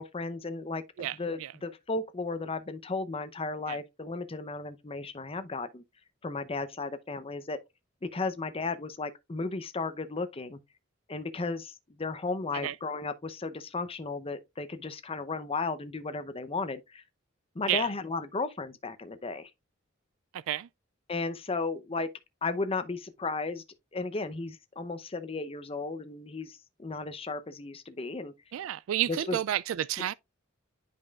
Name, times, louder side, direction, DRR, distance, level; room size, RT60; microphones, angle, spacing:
voice 1, 0.0-5.8 6.2-7.6 8.0-10.6 11.1-17.0 17.5-19.5 21.1-22.1 22.4-23.6 23.9-28.3 29.1-29.4, left 3 dB, 30° left, 0.7 m, -34 dB
voice 2, 1.0-1.5 3.7-3.8 12.6-12.8 17.7-17.9 20.3-20.7 28.5-30.1, right 12 dB, 85° right, 0.3 m, -31 dB
9.6 x 5.3 x 2.3 m
head